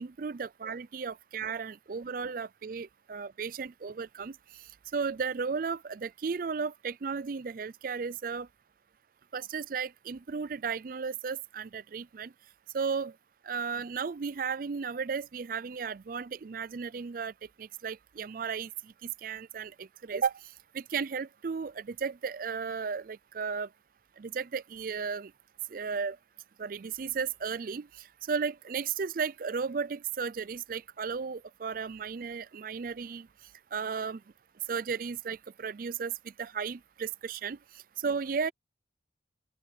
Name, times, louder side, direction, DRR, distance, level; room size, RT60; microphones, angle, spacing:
voice 1, 0.0-4.4 4.9-8.5 9.3-12.3 12.7-13.1 13.5-17.3 17.6-18.7 19.0-20.3 20.7-23.7 24.2-25.3 25.7-26.2 26.6-27.9 28.3-33.3 33.7-34.2 34.7-36.1 36.4-37.6 38.0-38.5, right 5 dB, 50° right, 0.4 m, -34 dB
open air
head